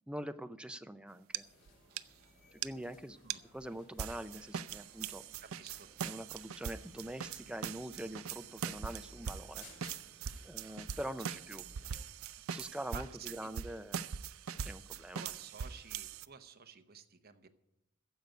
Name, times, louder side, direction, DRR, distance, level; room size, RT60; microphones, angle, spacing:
voice 1, 0.1-1.4 2.5-5.2 6.0-9.7 10.4-11.6 12.5-14.1 14.6-15.2, right 1 dB, 5° right, 10 dB, 0.5 m, -44 dB
sound 1, 1.3-1.4 1.7-1.8 2.0-2.1 2.6-2.7 3.3-3.4 4.0-16.3, right 7 dB, 85° right, 0.5 m, -42 dB
sound 2, 1.4-12.0, left 1 dB, 65° left, 4.1 m, -60 dB
voice 2, 5.4-5.9 11.2-11.4 12.9-13.5 15.1-17.5, right 6 dB, 50° right, 7 dB, 0.9 m, -52 dB
15.0 x 5.2 x 9.3 m, 0.85 s
head